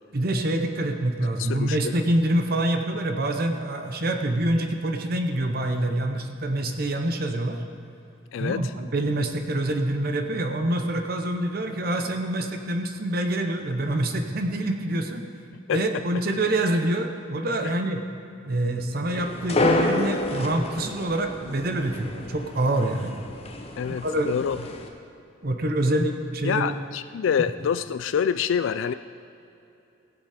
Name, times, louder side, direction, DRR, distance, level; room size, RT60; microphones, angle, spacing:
voice 1, 0.1-7.6 8.4-15.2 15.7-18.0 18.4-23.2 24.0-24.3 24.7-24.8 25.4-26.7, right 1 dB, 50° right, 5 dB, 0.8 m, -26 dB
voice 2, 1.4-2.0 8.3-8.6 15.7-15.8 23.8-24.6 26.4-28.9, left 7 dB, 75° left, 11 dB, 0.3 m, -26 dB
sound 1, 19.1-24.9, left 2 dB, 30° left, 0.9 m, -29 dB
17.0 x 8.2 x 5.0 m, 2.7 s
head